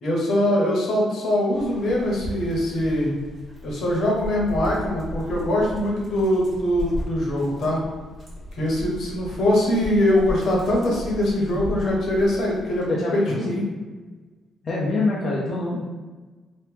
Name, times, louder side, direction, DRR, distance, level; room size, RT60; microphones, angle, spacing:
voice 1, 0.0-3.1 3.6-7.8 8.5-13.6, left 1 dB, 70° left, -3 dB, 1.1 m, -22 dB
Dog, 1.5-12.9, equal, 35° right, 1.4 m, -36 dB
voice 2, 12.9-13.6 14.6-15.8, left 2 dB, 45° left, -5 dB, 0.6 m, -25 dB
3.1 x 2.8 x 3.3 m, 1.3 s
cardioid pair, 90°, 0 cm